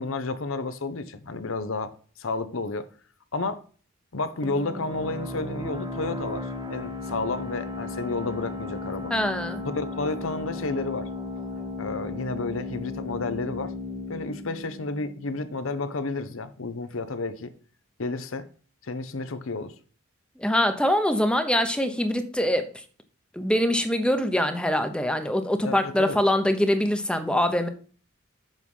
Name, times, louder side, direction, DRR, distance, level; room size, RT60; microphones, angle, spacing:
voice 1, 0.0-1.9 2.2-2.9 3.3-3.6 4.1-9.1 9.6-11.1 11.8-13.7 14.1-17.5 18.0-18.5 18.8-19.7 25.6-26.2, left 3 dB, 75° left, 0.8 m, -31 dB
sound 1, 4.4-15.8, left 2 dB, 20° right, 1.1 m, -35 dB
voice 2, 9.1-9.6 20.4-22.7 23.4-27.7, left 1 dB, 5° left, 0.7 m, -23 dB
7.5 x 4.8 x 5.4 m
head